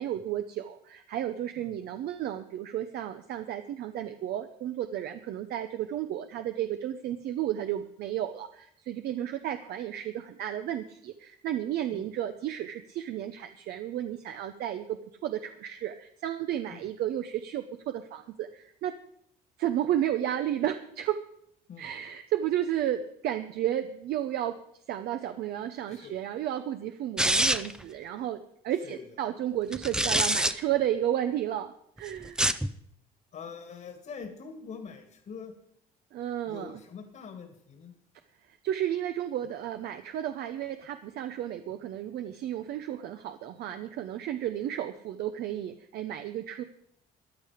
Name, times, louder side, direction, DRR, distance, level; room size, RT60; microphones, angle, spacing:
voice 1, 0.0-18.9 19.6-21.2 21.8-24.6 24.9-31.7 32.0-32.5 36.1-36.7 38.5-46.6, right 11 dB, 70° right, 8 dB, 0.7 m, -32 dB
sound 1, 27.2-27.8 29.7-30.5 32.2-32.7, right 1 dB, 5° right, 0.5 m, -25 dB
voice 2, 28.8-29.2 33.3-35.5 36.5-37.9, left 6 dB, 55° left, 5 dB, 2.0 m, -44 dB
14.0 x 10.0 x 5.1 m, 0.71 s
cardioid pair, 110°, 17 cm